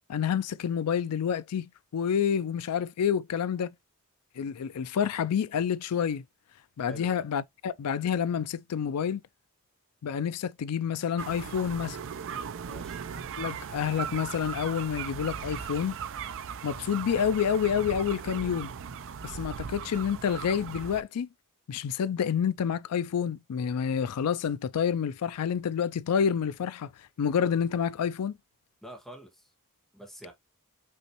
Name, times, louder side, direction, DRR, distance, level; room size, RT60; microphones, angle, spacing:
voice 1, 0.1-3.7 4.4-6.2 6.8-9.2 10.0-12.0 13.4-16.0 16.6-18.7 19.2-21.3 21.7-28.4, left 7 dB, 90° left, 0.4 m, -28 dB
sound 1, 11.2-21.0, right 7 dB, 60° right, 0.5 m, -38 dB
voice 2, 12.7-13.0 28.8-29.5 29.9-30.3, equal, ahead, 1.4 m, -46 dB
5.5 x 3.0 x 3.0 m
head